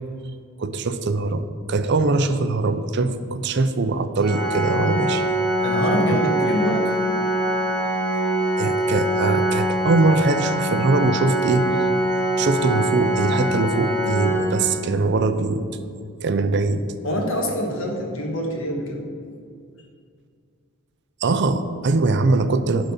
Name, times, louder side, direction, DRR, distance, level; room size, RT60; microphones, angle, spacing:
voice 1, 0.6-5.3 6.1-6.2 8.6-11.7 12.4-15.6 16.2-16.8 21.2-22.9, right 3 dB, 55° right, 10 dB, 0.5 m, -22 dB
Organ, 4.2-15.1, right 1 dB, 5° left, 2.0 m, -23 dB
voice 2, 5.6-6.9 17.0-19.1, equal, 65° left, 1 dB, 1.5 m, -25 dB
11.5 x 4.0 x 5.6 m, 2.2 s
head